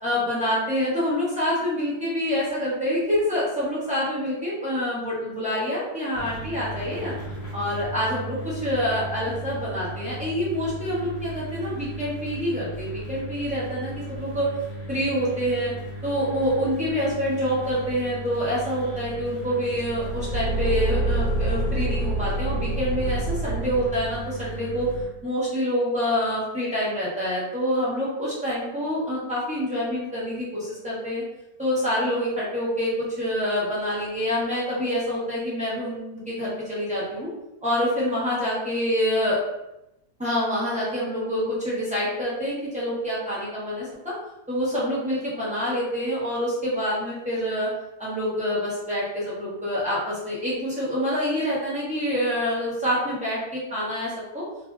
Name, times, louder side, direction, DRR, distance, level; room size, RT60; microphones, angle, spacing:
voice 1, 0.0-7.1 7.5-14.5 14.9-15.7 16.0-24.9 25.2-31.2 31.6-37.3 37.6-39.4 40.2-44.1 44.5-47.7 48.0-54.4, equal, 10° right, -10 dB, 0.4 m, -26 dB
sound 1, 6.1-25.1, right 1 dB, 60° left, 1.3 m, -36 dB
Car / Engine, 19.7-24.3, right 2 dB, 85° left, 1.4 m, -27 dB
3.3 x 2.3 x 2.3 m, 0.89 s
omnidirectional pair, 1.9 m